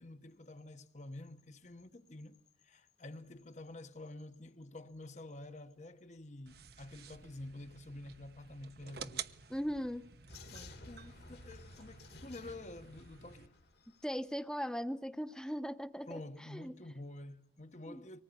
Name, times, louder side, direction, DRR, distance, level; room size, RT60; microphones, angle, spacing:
voice 1, 0.0-9.3 10.4-13.6 16.1-18.2, left 2 dB, 40° left, 1.1 m, -49 dB
sound 1, 6.5-13.5, right 7 dB, 55° right, 0.9 m, -51 dB
voice 2, 9.5-10.1 14.0-16.2 16.5-16.7 17.9-18.0, equal, 5° left, 0.9 m, -38 dB
Vehicle, 10.3-14.2, left 2 dB, 55° left, 2.1 m, -54 dB
24.5 x 19.0 x 9.8 m
head